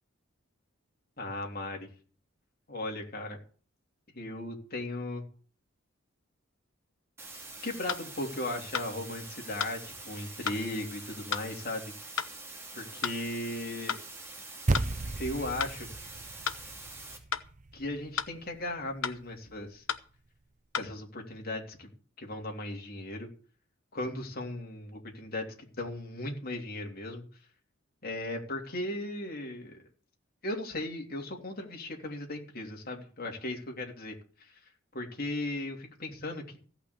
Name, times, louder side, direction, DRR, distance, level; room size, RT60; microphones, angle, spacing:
voice 1, 1.2-1.9 2.7-3.4 4.1-5.2 7.6-11.8 12.7-14.0 15.2-15.9 17.7-19.8 20.8-21.9 22.2-23.3 23.9-27.2 28.0-29.7 30.4-34.5 34.9-36.6, left 1 dB, 45° left, 1 dB, 3.2 m, -37 dB
sound 1, 7.2-17.2, right 3 dB, 15° right, 2.9 m, -45 dB
sound 2, 7.9-8.1 8.7-8.9 9.6-9.8 10.5-10.6 11.3-11.5 12.2-12.3 13.0-13.2 13.9-14.1 14.7-14.9 15.6-15.8 16.5-16.6 17.3-17.5 18.2-18.3 19.0-19.2 19.9-20.1 20.7-20.9, left 7 dB, 75° left, 1.0 m, -33 dB
sound 3, 14.7-19.2, right 2 dB, 35° right, 0.6 m, -35 dB
16.0 x 5.9 x 8.3 m, 0.42 s
head